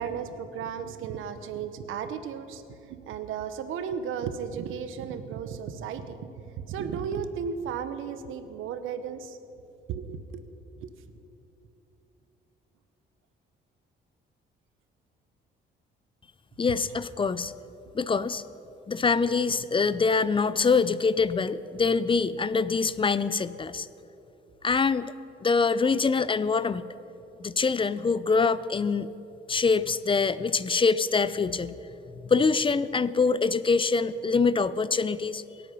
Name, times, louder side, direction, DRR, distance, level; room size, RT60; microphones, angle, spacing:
voice 1, 0.0-6.2 6.5-9.4 9.9-10.4 10.8-10.9, right 7 dB, 85° right, 11 dB, 1.0 m, -34 dB
voice 2, 16.6-17.5 17.9-18.4 18.9-23.9 24.6-25.1 25.4-26.8 27.4-29.1 29.5-31.7 32.2-35.4, left 4 dB, 25° left, 16 dB, 0.5 m, -24 dB
23.5 x 8.5 x 5.6 m, 2.9 s
cardioid pair, 90°, 20 cm